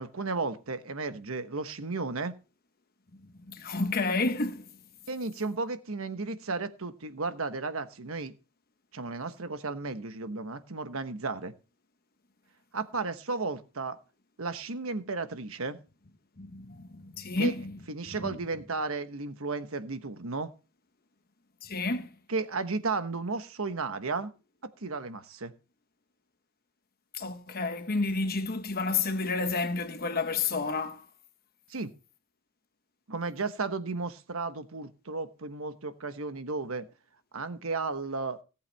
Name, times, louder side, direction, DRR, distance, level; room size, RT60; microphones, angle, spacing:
voice 1, 0.0-2.3 5.1-8.3 8.9-11.5 12.7-14.0 14.4-15.8 17.4-17.5 17.9-20.5 22.3-24.3 24.8-25.5 31.7-31.9 33.1-36.9 37.3-38.4, right 3 dB, 70° right, 1.2 m, -34 dB
voice 2, 3.1-4.7 16.4-17.8 18.2-18.4 21.6-22.1 27.1-31.1, left 3 dB, 45° left, 1.1 m, -30 dB
17.5 x 8.3 x 3.4 m
head